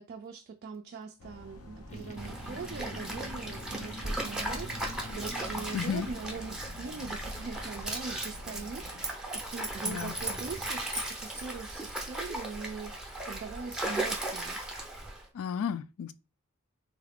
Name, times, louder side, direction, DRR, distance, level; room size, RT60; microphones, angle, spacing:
voice 1, 0.0-14.6, right 5 dB, 50° right, 0.3 m, -42 dB
sound 1, 1.2-9.1, left 1 dB, 90° left, 0.7 m, -49 dB
sound 2, 1.9-6.9, equal, 35° left, 0.6 m, -44 dB
Stream, 2.2-15.2, right 1 dB, 5° right, 0.6 m, -37 dB
voice 2, 5.7-6.1 9.8-10.1 15.3-16.1, left 7 dB, 70° left, 0.3 m, -33 dB
3.5 x 2.3 x 3.4 m
head